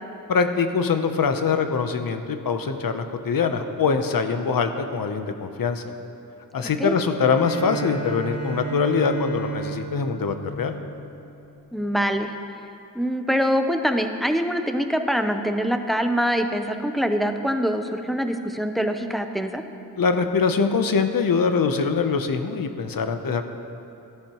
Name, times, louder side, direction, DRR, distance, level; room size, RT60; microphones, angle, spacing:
voice 1, 0.3-5.8 6.5-10.8 20.0-23.4, left 5 dB, 75° left, 8 dB, 0.7 m, -23 dB
Bowed string instrument, 7.3-11.6, right 4 dB, 45° right, 2.3 m, -33 dB
voice 2, 11.7-12.3 12.9-19.6, equal, ahead, 6 dB, 0.6 m, -24 dB
14.0 x 11.5 x 3.0 m, 3.0 s
wide cardioid pair, 110°, 35 cm